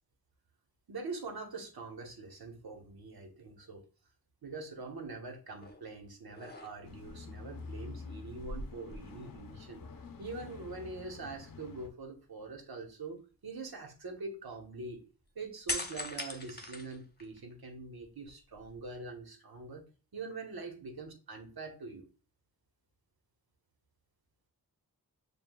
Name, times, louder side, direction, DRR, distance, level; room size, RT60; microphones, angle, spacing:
voice 1, 0.9-3.8 4.4-9.8 10.2-15.0 15.3-19.8 20.1-22.0, right 3 dB, 75° right, 2 dB, 1.2 m, -44 dB
sound 1, 5.6-5.9 6.3-7.1 8.3-9.6 9.9-10.0 15.7-17.5 18.0-18.9, left 1 dB, 25° left, 0.9 m, -41 dB
sound 2, 6.8-11.9, left 4 dB, 65° left, 0.7 m, -48 dB
6.9 x 2.3 x 2.3 m, 0.37 s
cardioid pair, 45°, 37 cm